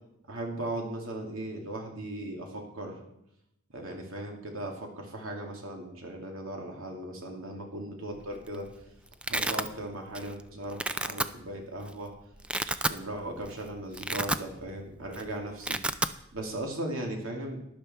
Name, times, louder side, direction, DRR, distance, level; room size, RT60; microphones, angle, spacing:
voice 1, 0.3-3.0 3.7-8.7 9.3-12.1 12.9-15.8 16.3-17.6, right 1 dB, 85° right, 1 dB, 2.7 m, -37 dB
Domestic sounds home sounds, 8.2-8.6 8.8-9.7 10.1-10.4 10.7-11.3 11.9-12.0 12.3-13.0 13.4-13.5 13.9-14.8 15.0-15.2 15.5-16.1, right 2 dB, 5° right, 0.3 m, -30 dB
12.0 x 10.5 x 4.4 m, 0.80 s
head